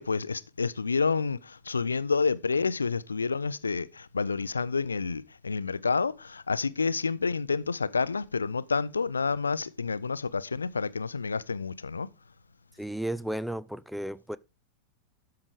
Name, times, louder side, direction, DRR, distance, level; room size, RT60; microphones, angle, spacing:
voice 1, 0.0-12.1, left 4 dB, 75° left, 0.4 m, -29 dB
voice 2, 12.8-14.4, right 1 dB, ahead, 0.4 m, -33 dB
12.5 x 4.7 x 4.8 m
figure-of-eight pair, 90°, 0 cm